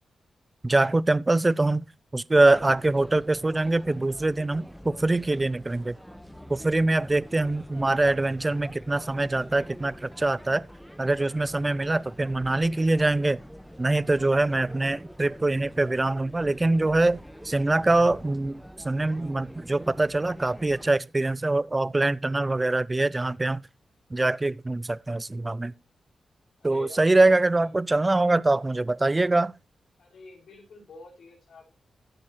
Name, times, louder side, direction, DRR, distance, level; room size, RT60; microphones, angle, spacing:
voice 1, 0.6-1.9 2.1-6.0 6.5-10.6 11.0-13.4 13.8-17.2 17.4-23.6 24.1-25.7 26.6-29.5, right 2 dB, 25° right, 0.5 m, -24 dB
sound 1, 2.5-20.9, equal, ahead, 1.4 m, -46 dB
voice 2, 26.6-27.8 30.0-31.7, left 2 dB, 75° left, 6.6 m, -47 dB
16.5 x 6.4 x 3.2 m
cardioid pair, 55°, 0 cm